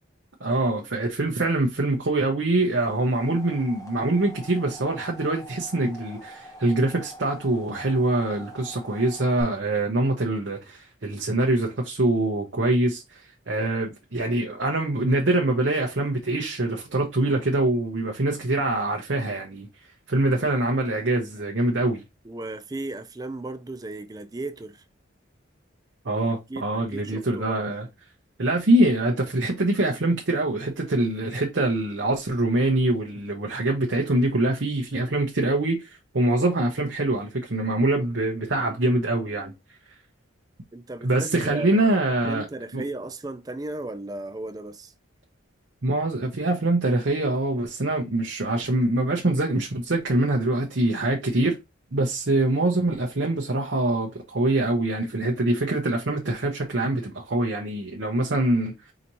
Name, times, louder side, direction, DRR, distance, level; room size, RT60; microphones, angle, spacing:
voice 1, 0.4-19.7 20.1-22.0 26.0-27.9 28.4-39.5 41.0-42.5 42.7-42.8 45.8-51.6 51.9-58.7, right 2 dB, 65° right, 0.8 m, -24 dB
sound 1, 2.7-9.4, equal, 15° left, 0.8 m, -44 dB
voice 2, 22.2-24.8 26.5-27.7 40.7-44.9, right 2 dB, 20° right, 0.4 m, -36 dB
4.9 x 2.7 x 3.0 m
head